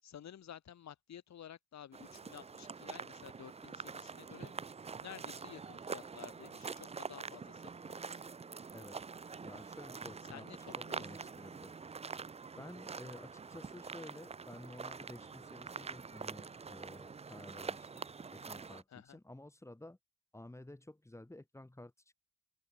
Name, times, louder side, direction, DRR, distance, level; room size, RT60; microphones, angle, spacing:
voice 1, 0.0-4.5 5.0-8.2 10.3-11.3 18.9-19.2, left 10 dB, 65° left, 5.4 m, -53 dB
sound 1, 1.9-18.8, right 5 dB, 20° right, 0.6 m, -45 dB
voice 2, 9.4-10.5 10.8-11.7 12.5-18.1 18.3-20.0 20.3-21.9, left 1 dB, 10° left, 3.1 m, -52 dB
open air
cardioid pair, 90°, 30 cm